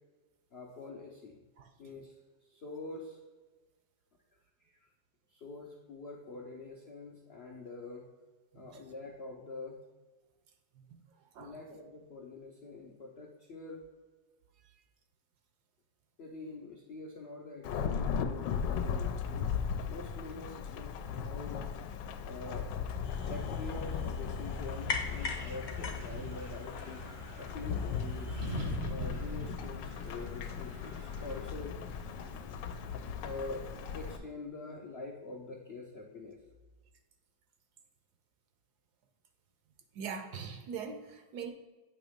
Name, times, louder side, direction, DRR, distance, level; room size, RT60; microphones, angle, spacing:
voice 1, 0.5-1.4 1.8-2.1 2.5-3.2 4.6-4.9 5.3-8.0 8.5-9.8 11.4-13.8 16.2-19.5 19.9-21.6 22.2-22.7 23.3-27.0 27.4-28.4 28.8-31.8 33.2-33.6 33.9-36.4, left 3 dB, 65° left, -1 dB, 0.6 m, -45 dB
Thunderstorm / Rain, 17.6-34.2, left 7 dB, 80° left, 1.2 m, -37 dB
sound 1, 23.0-28.8, left 3 dB, 45° left, 1.0 m, -41 dB
Wind, 24.3-34.3, right 1 dB, 40° right, 0.7 m, -45 dB
voice 2, 39.9-41.5, right 6 dB, 70° right, 6 dB, 1.1 m, -42 dB
8.7 x 3.0 x 5.0 m, 1.2 s
omnidirectional pair, 2.0 m